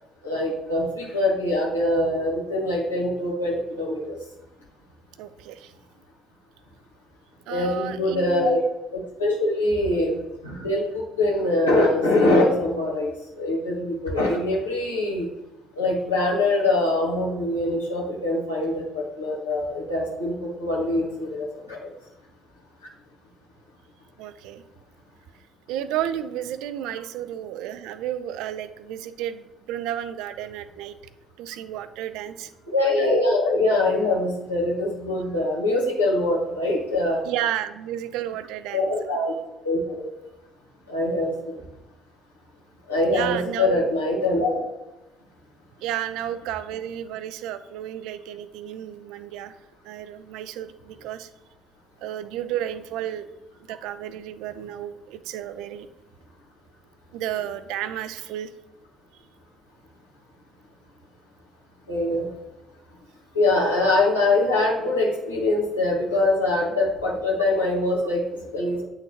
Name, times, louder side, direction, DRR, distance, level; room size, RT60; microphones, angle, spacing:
voice 1, 0.2-4.1 7.5-8.6 8.9-15.3 15.8-21.9 32.7-37.2 38.7-39.3 39.6-40.1 40.9-41.6 42.9-44.6 61.9-62.3 63.3-68.8, left 2 dB, 90° left, -4 dB, 1.3 m, -23 dB
voice 2, 5.2-5.7 7.5-8.6 24.2-24.6 25.7-31.0 31.4-32.5 37.2-38.9 43.1-43.9 45.8-49.5 49.8-51.3 52.0-53.3 53.7-55.9 57.1-58.5, right 11 dB, 65° right, 12 dB, 0.3 m, -32 dB
8.8 x 3.8 x 2.9 m, 1.0 s
figure-of-eight pair, 50°, 0 cm